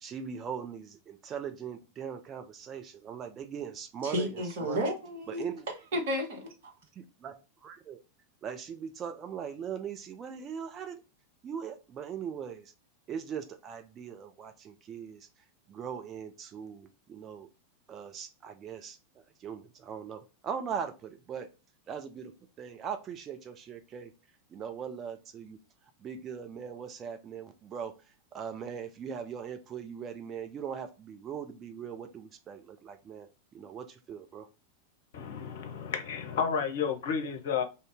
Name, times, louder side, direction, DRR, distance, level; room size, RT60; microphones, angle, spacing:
voice 1, 0.0-4.9 5.3-5.7 6.9-7.4 7.6-8.0 8.4-11.0 11.4-12.7 13.1-15.3 15.7-17.5 17.9-21.5 21.9-22.3 22.6-24.1 24.5-25.6 26.0-34.5, right 7 dB, 25° right, 0.4 m, -40 dB
voice 2, 4.0-5.5 5.9-6.7, equal, 55° right, 1.2 m, -32 dB
voice 3, 35.1-37.6, left 6 dB, 55° left, 0.7 m, -31 dB
2.7 x 2.7 x 3.2 m
figure-of-eight pair, 90°, 0 cm